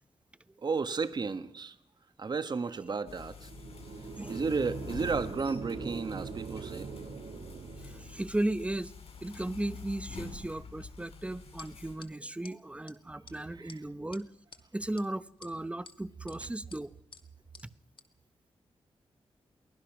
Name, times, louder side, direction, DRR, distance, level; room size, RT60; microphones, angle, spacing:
voice 1, 0.6-1.7 2.2-3.5 4.3-6.9 13.6-13.8, right 4 dB, 45° right, 1.4 m, -33 dB
sound 1, 3.1-12.0, left 4 dB, 80° left, 7.5 m, -47 dB
sound 2, 3.4-8.3, right 5 dB, 85° right, 2.9 m, -42 dB
voice 2, 7.8-8.9 9.2-14.3 14.7-16.9, right 1 dB, 10° right, 0.9 m, -36 dB
sound 3, 11.6-11.7 12.0-12.1 12.4-12.5 12.9-13.0 13.3-13.4 13.7-13.8 14.1-14.6 15.0-15.1 15.4-16.0 16.3-16.4 16.7-16.8 17.1-17.2 17.5-17.7 18.0-18.1, left 5 dB, 60° left, 2.1 m, -51 dB
23.5 x 18.5 x 6.1 m
wide cardioid pair, 100°, 10 cm